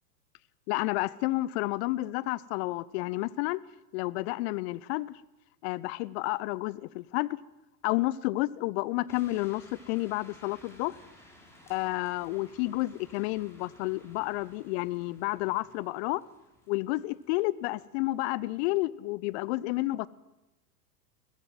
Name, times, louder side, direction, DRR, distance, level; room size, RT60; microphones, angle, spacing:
voice 1, 0.7-3.6 3.9-5.2 5.6-7.4 7.8-11.0 11.7-16.2 16.7-20.1, left 19 dB, 40° left, 0.9 m, -30 dB
sound 1, 9.1-18.0, left 1 dB, 5° left, 7.0 m, -57 dB
22.0 x 18.0 x 7.8 m
hypercardioid pair, 100°, 48 cm